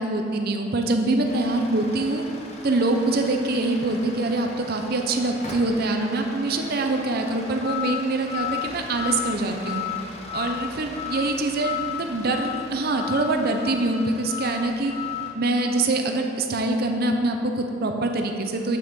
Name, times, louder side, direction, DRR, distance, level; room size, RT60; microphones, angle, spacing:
voice 1, 0.0-2.2 2.6-9.8 10.3-14.9 15.3-18.8, right 2 dB, 55° right, 4 dB, 0.6 m, -24 dB
sound 1, 1.3-15.3, left 8 dB, 35° left, 0.8 m, -35 dB
7.6 x 6.5 x 3.6 m, 2.7 s
head